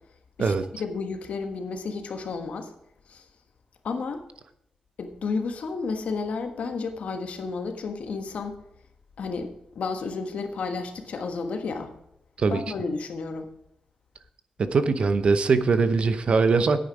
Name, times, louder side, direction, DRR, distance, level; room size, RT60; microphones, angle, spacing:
voice 1, 0.4-2.7 3.1-3.2 3.8-4.2 5.0-8.6 9.2-11.9 12.5-13.5, left 4 dB, 70° left, 5 dB, 1.4 m, -32 dB
voice 2, 14.6-16.8, right 4 dB, 50° right, 10 dB, 0.7 m, -21 dB
10.0 x 9.0 x 4.7 m, 0.79 s
wide cardioid pair, 130°, 2 cm